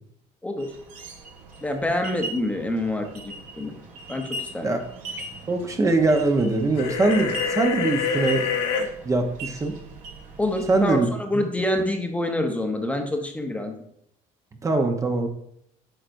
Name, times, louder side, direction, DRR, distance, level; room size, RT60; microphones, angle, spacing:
sound 1, 0.6-11.0, right 1 dB, 65° right, 1.9 m, -40 dB
voice 1, 1.6-3.7 4.1-4.7 10.4-13.7, left 1 dB, 10° left, 4 dB, 0.8 m, -27 dB
voice 2, 5.5-8.5 9.0-9.8 10.7-11.1 14.6-15.3, right 3 dB, 20° right, 4 dB, 0.8 m, -22 dB
sound 2, 6.7-8.8, left 6 dB, 80° left, 1.3 m, -26 dB
9.0 x 5.9 x 2.6 m, 0.72 s
cardioid pair, 125°, 15 cm